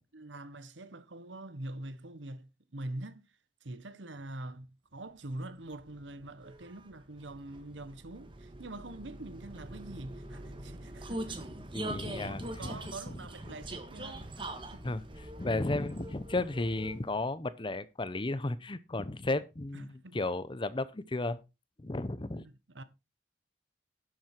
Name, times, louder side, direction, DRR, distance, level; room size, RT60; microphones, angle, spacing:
voice 1, 0.1-3.3 3.6-11.3 12.2-15.0 19.7-20.2 22.3-22.8, right 1 dB, 90° right, 1.2 m, -44 dB
Vehicle, 5.4-17.2, right 1 dB, 30° right, 1.6 m, -43 dB
voice 2, 11.7-12.8 14.8-15.0 15.4-21.4 21.8-22.5, left 2 dB, 25° left, 0.7 m, -34 dB
11.0 x 7.6 x 4.5 m
head